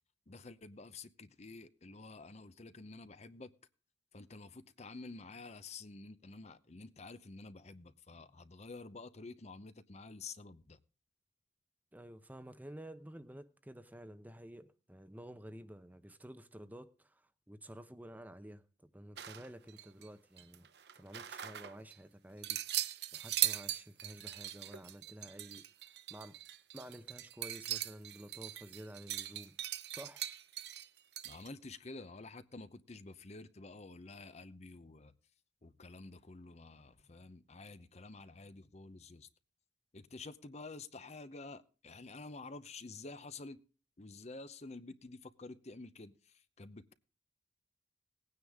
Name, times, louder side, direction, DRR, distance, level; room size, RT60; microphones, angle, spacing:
voice 1, 0.3-3.5 4.1-10.8 31.2-35.1 35.6-39.3 39.9-43.6 44.0-46.9, left 3 dB, 40° left, 0.8 m, -50 dB
voice 2, 11.9-17.2 17.5-20.7 21.0-22.6 23.1-25.6 26.1-26.4 26.7-29.6 29.9-30.2, equal, 10° right, 0.8 m, -51 dB
sound 1, 19.2-20.1 20.4-22.0 22.4-31.5, right 13 dB, 65° right, 0.8 m, -40 dB
18.5 x 9.6 x 3.6 m
head